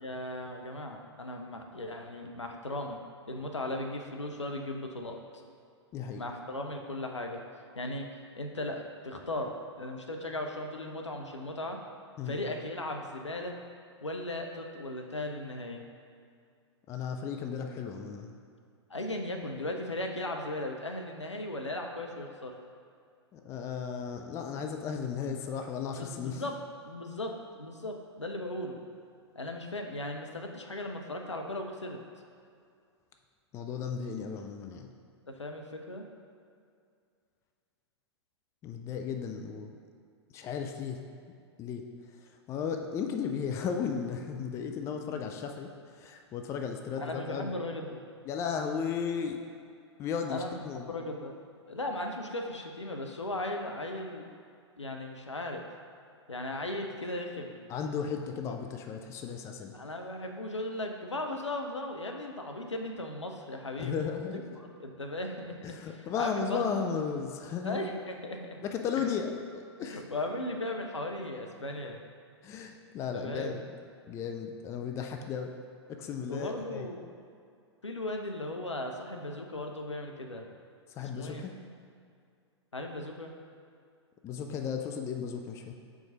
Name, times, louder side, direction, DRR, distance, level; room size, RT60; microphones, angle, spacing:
voice 1, 0.0-3.0 3.3-5.2 6.2-7.4 7.8-8.1 8.4-11.8 12.3-13.5 14.0-15.8 18.9-22.5 25.9-26.6 26.8-28.8 29.3-32.0 35.3-36.0 45.1-45.2 47.0-48.0 50.3-51.4 51.7-54.3 54.8-55.6 56.3-57.6 59.7-63.9 64.6-65.7 66.2-66.8 67.6-68.6 69.8-72.0 73.1-73.6 76.3-77.0 77.8-80.5 81.1-81.5 82.7-83.3, left 1 dB, 85° left, 3 dB, 0.7 m, -37 dB
voice 2, 5.9-6.2 12.2-12.4 16.9-18.4 23.3-26.4 33.5-34.9 38.6-39.7 40.3-41.0 41.6-41.8 42.2-47.5 48.3-49.4 50.0-51.0 57.7-59.7 63.8-64.4 65.6-67.8 68.6-70.0 72.4-73.6 74.1-75.5 75.9-76.9 80.9-81.5 84.2-85.7, left 6 dB, 20° left, 4 dB, 0.4 m, -35 dB
4.8 x 3.9 x 5.6 m, 2.3 s
figure-of-eight pair, 105°, 15 cm